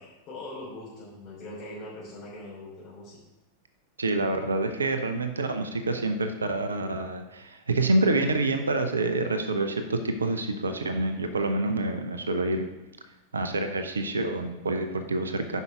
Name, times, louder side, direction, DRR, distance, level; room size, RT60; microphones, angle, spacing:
voice 1, 0.0-3.2, left 1 dB, 35° left, -8 dB, 3.1 m, -41 dB
voice 2, 4.0-12.7 13.3-15.6, right 2 dB, 75° right, 8 dB, 0.6 m, -27 dB
8.1 x 5.5 x 5.0 m, 1.0 s
figure-of-eight pair, 90°, 0 cm